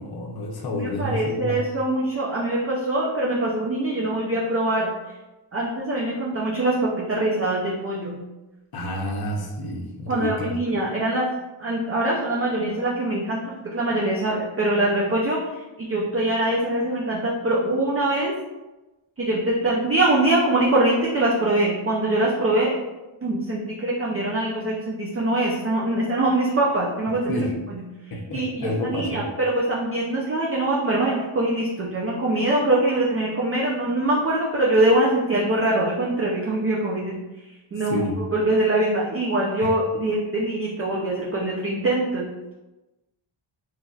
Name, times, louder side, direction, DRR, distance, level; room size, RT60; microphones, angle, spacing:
voice 1, 0.0-1.6 8.7-10.5 27.3-27.5 28.1-29.3 37.8-38.2 39.6-39.7, left 1 dB, 50° left, -1 dB, 0.7 m, -29 dB
voice 2, 0.7-4.9 5.5-8.2 10.1-11.3 11.6-13.4 13.7-15.6 15.9-18.3 19.2-22.7 23.2-27.4 27.7-27.8 28.3-37.2 37.7-42.5, right 1 dB, 30° right, -4 dB, 0.5 m, -23 dB
3.2 x 2.5 x 2.3 m, 1.1 s
wide cardioid pair, 70°, 49 cm